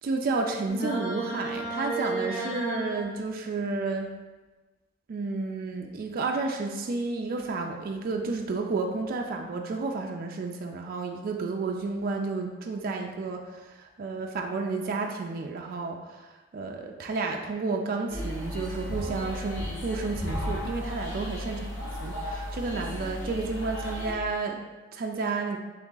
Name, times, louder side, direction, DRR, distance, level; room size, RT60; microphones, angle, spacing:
voice 1, 0.0-4.1 5.1-21.6 22.0-24.6 24.9-25.6, right 3 dB, 50° right, 2 dB, 0.3 m, -31 dB
sound 1, 0.7-3.0, right 2 dB, 45° left, 1.3 m, -32 dB
sound 2, 18.1-24.1, left 1 dB, 65° left, 0.9 m, -34 dB
3.5 x 3.0 x 3.8 m, 1.2 s
head